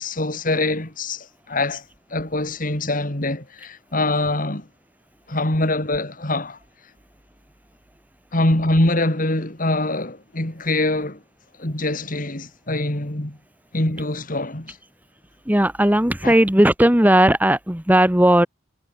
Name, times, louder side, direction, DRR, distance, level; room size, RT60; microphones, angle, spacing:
voice 1, 0.0-1.8 2.1-4.7 5.3-6.6 8.3-11.2 11.6-13.4 13.7-14.8 16.2-16.4, left 2 dB, 45° left, 2.9 m, -24 dB
voice 2, 15.5-18.5, right 1 dB, 10° right, 1.3 m, -16 dB
head